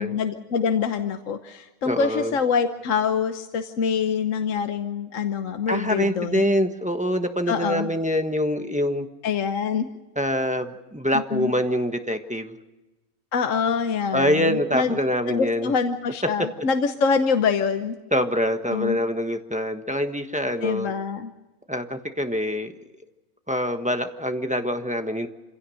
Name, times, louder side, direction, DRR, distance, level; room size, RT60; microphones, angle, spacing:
voice 1, 0.0-6.5 7.5-7.9 9.2-9.9 11.1-11.5 13.3-15.0 15.3-18.0 18.7-19.0 20.6-21.3, left 6 dB, 65° left, 7 dB, 1.3 m, -25 dB
voice 2, 1.9-2.3 5.7-9.1 10.2-12.5 14.1-15.7 18.1-20.9 21.7-22.7 23.5-25.3, equal, 5° right, 6 dB, 1.2 m, -25 dB
26.5 x 17.0 x 6.5 m, 1.1 s
omnidirectional pair, 1.5 m